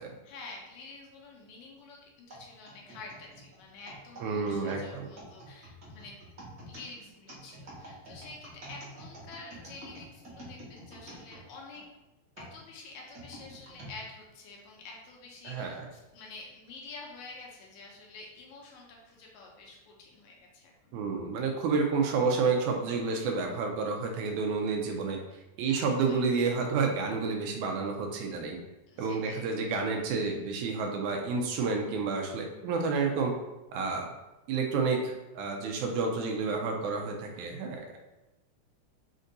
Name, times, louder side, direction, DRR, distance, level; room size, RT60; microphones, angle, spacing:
voice 1, 0.2-6.2 6.7-11.9 12.4-21.0 25.7-26.2 28.9-29.5, left 3 dB, 75° left, -1 dB, 1.9 m, -48 dB
sound 1, 2.3-11.8 12.4-13.9 14.6-14.7 15.5-15.8, right 1 dB, 45° right, 1.4 m, -48 dB
voice 2, 4.2-5.1 15.5-15.9 20.9-25.2 25.6-28.6 29.0-33.3 33.7-34.1 34.5-38.0, right 4 dB, 80° right, 2 dB, 1.9 m, -30 dB
5.2 x 2.6 x 3.8 m, 1.0 s
omnidirectional pair, 3.6 m